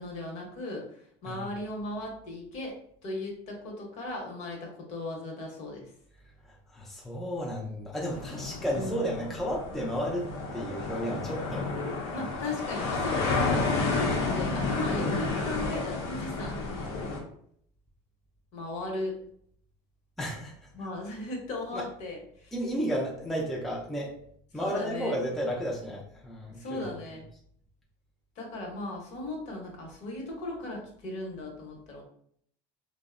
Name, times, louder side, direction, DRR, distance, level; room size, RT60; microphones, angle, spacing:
voice 1, 0.0-2.8 3.0-5.9 8.7-9.2 12.1-16.7 18.5-19.2 20.7-22.5 24.5-25.2 26.5-27.3 28.4-32.0, left 2 dB, 50° left, 0 dB, 0.9 m, -37 dB
voice 2, 6.7-11.7 12.1-12.2 20.2-20.5 21.7-21.9 22.5-24.1 24.5-26.9, equal, ahead, -4 dB, 0.4 m, -33 dB
sound 1, 8.1-17.2, left 3 dB, 85° left, 0.7 m, -31 dB
2.6 x 2.0 x 2.5 m, 0.65 s
cardioid pair, 130°, 15 cm